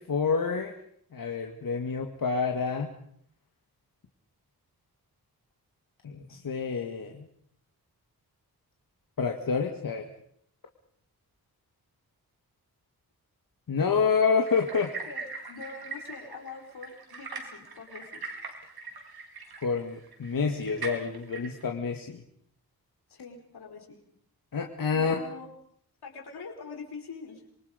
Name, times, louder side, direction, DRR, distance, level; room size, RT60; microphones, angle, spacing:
voice 1, 0.1-0.7 1.1-2.9 6.0-7.3 9.2-10.1 13.7-14.9 19.6-22.2 24.5-25.2, left 5 dB, 60° left, 2 dB, 2.2 m, -28 dB
sound 1, 14.5-21.6, right 4 dB, 75° right, 4.7 m, -41 dB
voice 2, 15.1-18.2 23.1-24.0 24.9-25.5 26.0-27.4, left 5 dB, 85° left, 1 dB, 5.4 m, -44 dB
27.0 x 24.0 x 5.3 m, 0.65 s
wide cardioid pair, 145°, 38 cm